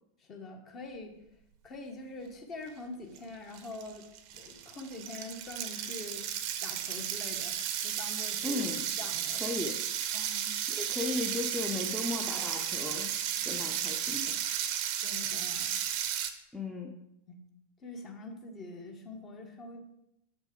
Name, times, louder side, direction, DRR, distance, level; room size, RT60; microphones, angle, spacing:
voice 1, 0.2-1.1 1.6-4.1 4.3-6.3 6.6-8.7 9.0-9.4 10.1-10.5 15.0-15.8 17.3-17.4 17.8-19.8, left 2 dB, 30° left, 3 dB, 1.3 m, -44 dB
sound 1, 3.2-3.3 3.5-16.3, right 10 dB, 45° right, 0.7 m, -34 dB
voice 2, 8.4-8.9 9.3-9.8 10.7-13.2 13.4-14.4 16.5-16.9, left 3 dB, ahead, -1 dB, 0.8 m, -36 dB
7.5 x 6.0 x 3.8 m, 0.82 s
figure-of-eight pair, 90°, 0 cm